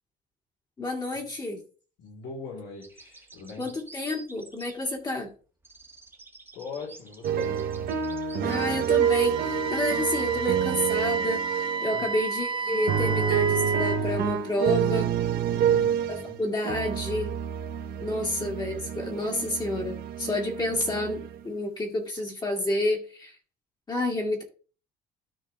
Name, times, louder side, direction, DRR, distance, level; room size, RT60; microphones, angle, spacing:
voice 1, 0.8-1.6 3.6-5.3 8.4-15.1 16.4-17.3 18.0-23.4 23.9-24.4, left 1 dB, 25° left, 0 dB, 2.2 m, -30 dB
voice 2, 2.0-3.7 6.5-8.2 10.2-10.4 11.9-12.1 15.4-16.4 18.2-18.4, left 4 dB, 80° left, -3 dB, 3.9 m, -42 dB
sound 1, 2.8-5.3 5.6-8.9, right 3 dB, 15° right, 1.5 m, -50 dB
sound 2, 7.2-12.1 12.7-16.4 16.6-21.5, right 8 dB, 65° right, 1.1 m, -28 dB
Wind instrument woodwind instrument, 9.0-14.0, right 4 dB, 30° right, 0.7 m, -31 dB
13.0 x 4.4 x 3.6 m, 0.39 s
cardioid pair, 130°, 16 cm